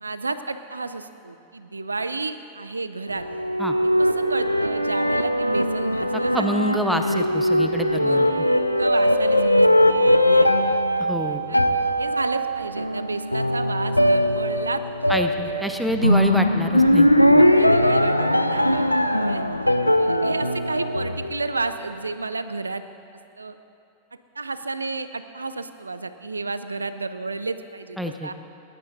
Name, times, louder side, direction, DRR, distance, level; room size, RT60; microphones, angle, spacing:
voice 1, 0.0-3.3 4.0-6.7 7.9-9.7 9.9-10.7 11.5-11.6 12.0-15.6 16.8-19.4 20.0-22.8 23.4-23.6 24.3-28.3, right 3 dB, 80° right, 11 dB, 0.5 m, -31 dB
sound 1, 3.1-21.7, equal, 90° left, 0.4 m, -20 dB
voice 2, 6.3-8.3 11.0-11.4 15.1-17.1 17.3-17.5 28.0-28.3, equal, ahead, 6 dB, 0.8 m, -27 dB
19.0 x 10.5 x 4.0 m, 2.7 s
figure-of-eight pair, 90°, 0 cm